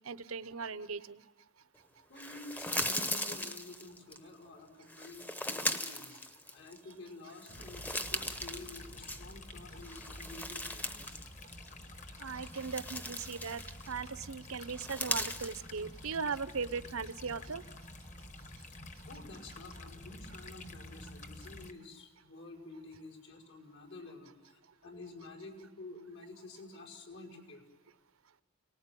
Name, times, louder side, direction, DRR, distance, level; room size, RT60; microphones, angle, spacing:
voice 1, 0.1-1.2 12.2-13.6 13.9-17.6, right 5 dB, 80° right, 15 dB, 0.8 m, -38 dB
voice 2, 2.1-11.2 19.1-27.6, left 2 dB, 70° left, 0 dB, 5.5 m, -50 dB
sound 1, 2.2-4.2 4.9-6.9 7.3-9.5 9.8-11.3 11.5-11.7 12.3-14.0 14.7-15.6, left 1 dB, 10° left, 0.8 m, -38 dB
sound 2, 7.5-21.7, left 1 dB, 35° left, 1.4 m, -49 dB
29.5 x 19.0 x 9.1 m, 1.2 s
head